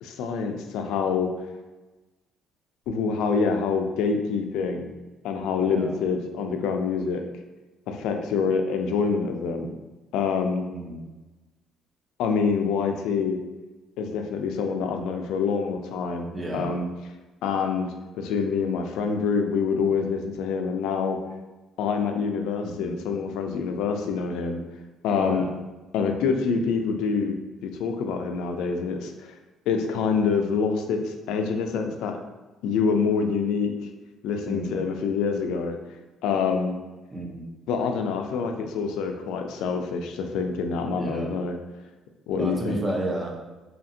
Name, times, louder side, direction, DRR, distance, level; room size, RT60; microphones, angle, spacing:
voice 1, 0.0-1.3 2.9-4.9 5.2-7.2 7.9-9.7 10.1-10.6 12.2-13.4 14.0-16.9 17.4-21.2 21.8-24.6 25.0-25.5 25.9-29.3 29.7-32.2 32.6-33.9 34.2-35.8 36.2-36.7 37.7-41.6 42.3-42.8, left 5 dB, 85° left, 4 dB, 0.3 m, -26 dB
voice 2, 5.6-5.9 10.7-11.0 16.3-16.7 22.6-23.0 25.2-25.5 34.5-34.8 37.1-37.5 40.9-41.3 42.4-43.4, right 1 dB, 15° right, 0 dB, 0.5 m, -32 dB
2.7 x 2.5 x 2.6 m, 1.2 s
cardioid pair, 145°, 0 cm